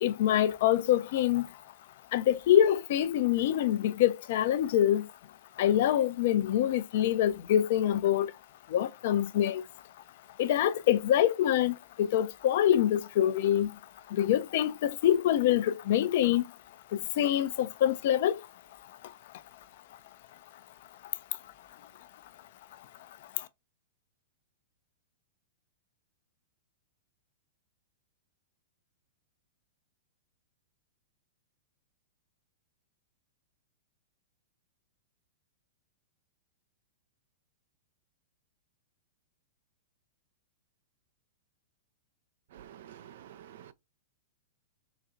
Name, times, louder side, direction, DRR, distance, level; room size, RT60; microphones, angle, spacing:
voice 1, 0.0-1.6 2.1-5.1 5.6-8.3 8.7-9.6 10.4-13.8 14.1-16.6 16.9-18.5 19.0-19.1 23.3-23.5, left 11 dB, 55° left, 0.4 m, -25 dB
voice 2, 42.5-43.7, right 10 dB, 55° right, 0.3 m, -49 dB
3.9 x 2.3 x 2.6 m
figure-of-eight pair, 100°, 0 cm